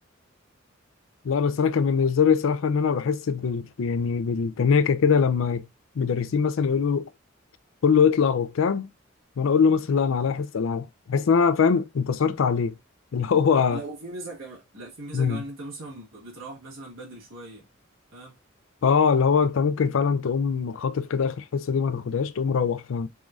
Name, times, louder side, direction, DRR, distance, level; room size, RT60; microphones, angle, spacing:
voice 1, 1.2-5.7 6.0-7.1 7.8-8.9 9.4-12.8 13.1-13.8 15.1-15.4 18.8-23.1, left 6 dB, 75° left, 0.4 m, -22 dB
voice 2, 13.7-17.7 18.1-18.4, right 2 dB, 65° right, 1.6 m, -39 dB
3.7 x 3.1 x 2.4 m
head